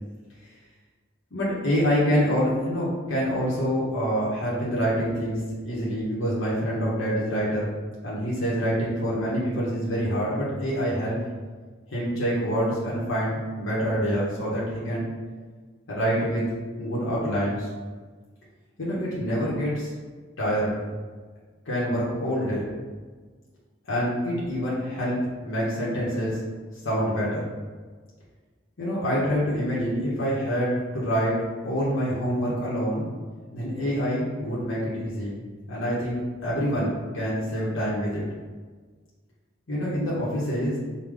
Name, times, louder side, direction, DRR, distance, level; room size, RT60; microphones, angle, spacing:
voice 1, 1.3-7.7 8.0-11.2 11.9-15.1 15.9-16.5 16.8-17.7 18.8-19.9 20.4-20.8 21.7-22.7 23.9-26.4 26.7-27.5 28.8-31.3 31.6-33.1 33.5-35.4 35.7-38.2 39.7-40.8, equal, 85° left, -7 dB, 1.0 m, -26 dB
4.8 x 2.2 x 3.7 m, 1.5 s
head